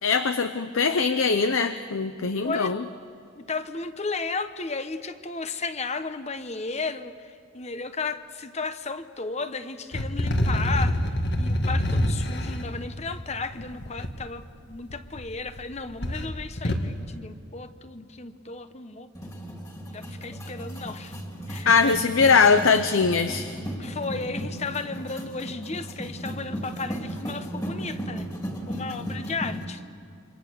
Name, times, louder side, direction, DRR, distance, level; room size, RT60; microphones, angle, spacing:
voice 1, 0.0-2.8 21.7-23.5, left 5 dB, 80° left, 10 dB, 0.7 m, -21 dB
voice 2, 3.4-11.0 11.4-19.1 19.9-21.1 21.5-22.0 23.8-28.3 28.7-29.8, left 4 dB, 35° left, 10 dB, 1.0 m, -34 dB
sound 1, 9.9-14.1 14.9-15.6 15.9-16.9, left 1 dB, 55° left, 2.0 m, -26 dB
sound 2, 19.1-29.6, equal, 15° left, 2.6 m, -35 dB
28.0 x 24.5 x 6.8 m, 2.5 s
head